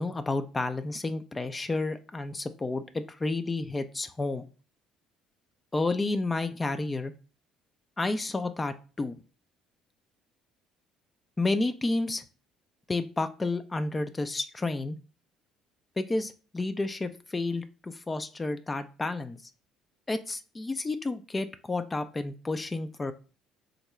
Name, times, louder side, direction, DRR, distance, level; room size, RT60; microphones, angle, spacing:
voice 1, 0.0-4.5 5.7-7.1 8.0-9.2 11.4-12.2 12.9-15.0 16.0-19.5 20.1-23.1, left 2 dB, 25° left, 9 dB, 0.3 m, -31 dB
3.6 x 2.1 x 3.1 m, 0.35 s
hypercardioid pair, 55°, 0 cm